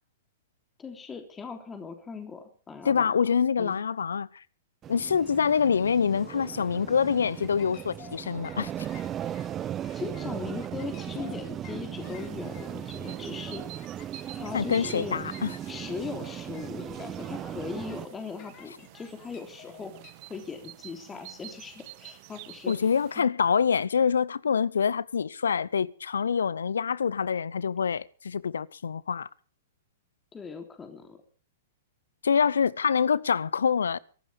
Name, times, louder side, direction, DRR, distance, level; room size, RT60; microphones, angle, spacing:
voice 1, 0.8-3.8 9.9-13.6 14.3-15.2 15.7-19.9 20.3-22.7 23.1-23.3 30.3-31.2, left 5 dB, 15° left, 3.3 m, -39 dB
voice 2, 2.8-4.4 4.9-8.7 14.5-15.6 22.7-29.3 32.2-34.0, left 6 dB, 75° left, 0.7 m, -26 dB
sound 1, 4.8-18.1, right 10 dB, 25° right, 0.6 m, -37 dB
sound 2, 7.3-20.1, left 9 dB, 40° left, 3.5 m, -52 dB
sound 3, 12.0-23.2, right 18 dB, 45° right, 1.6 m, -50 dB
24.0 x 12.5 x 3.5 m
figure-of-eight pair, 110°, 0 cm